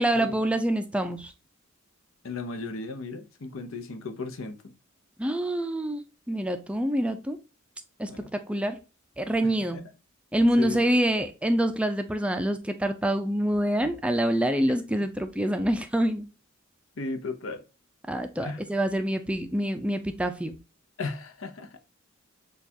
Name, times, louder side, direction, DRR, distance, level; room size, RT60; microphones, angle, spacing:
voice 1, 0.0-1.3 5.2-6.0 6.3-7.4 8.0-8.8 9.2-9.8 10.3-16.3 18.1-20.6, right 1 dB, 5° right, 0.4 m, -26 dB
voice 2, 2.2-4.8 8.1-8.3 9.7-9.9 10.6-10.8 17.0-17.6 18.4-18.6 21.0-21.8, left 3 dB, 80° left, 0.7 m, -35 dB
6.5 x 2.3 x 2.7 m
head